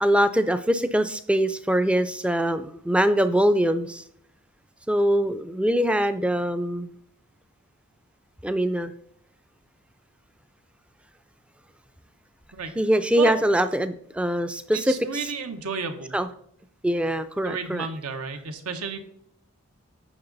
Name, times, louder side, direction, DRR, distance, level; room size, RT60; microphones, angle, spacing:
voice 1, 0.0-4.0 4.9-6.9 8.4-8.9 12.8-14.9 16.1-16.3 16.8-17.9, right 1 dB, 5° right, 11 dB, 0.3 m, -23 dB
voice 2, 12.5-12.8 13.2-13.4 14.7-16.2 17.4-19.0, right 4 dB, 85° right, 7 dB, 1.1 m, -32 dB
8.8 x 6.1 x 4.0 m, 0.67 s
head